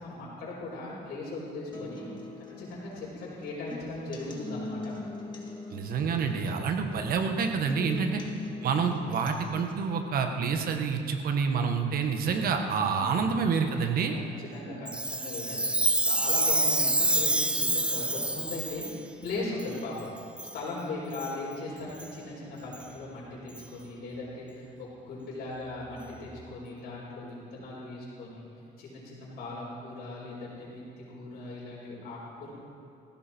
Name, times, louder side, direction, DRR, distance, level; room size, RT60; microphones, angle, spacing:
voice 1, 0.0-2.1 2.4-4.9 7.7-8.3 12.7-13.5 14.1-28.4 28.8-32.5, left 2 dB, 60° left, -9 dB, 5.0 m, -39 dB
sound 1, 1.7-9.7, left 2 dB, 25° left, 2.7 m, -42 dB
voice 2, 5.7-8.2 8.6-14.1, right 5 dB, 60° right, 5 dB, 1.6 m, -28 dB
Chime, 14.9-18.9 19.6-19.7 20.4-20.6 21.1-21.3 22.0-22.1 22.7-22.8 23.6-23.7, right 2 dB, 5° right, 0.6 m, -27 dB
19.0 x 16.0 x 4.6 m, 2.5 s
cardioid pair, 110°, 17 cm